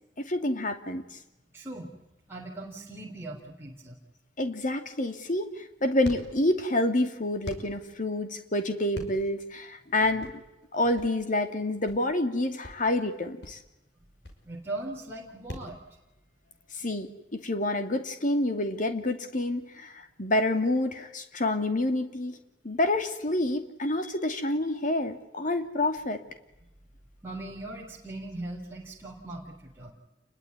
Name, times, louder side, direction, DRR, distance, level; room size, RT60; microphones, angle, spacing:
voice 1, 0.2-1.0 4.4-10.3 10.7-13.6 16.7-22.4 22.6-26.2, left 1 dB, 45° left, 7 dB, 2.6 m, -28 dB
voice 2, 1.5-1.9 2.3-4.0 14.4-15.8 27.2-29.9, right 2 dB, 15° right, -2 dB, 3.6 m, -39 dB
sound 1, 5.0-15.7, equal, 70° left, 6.1 m, -45 dB
28.5 x 21.5 x 9.7 m, 0.95 s
head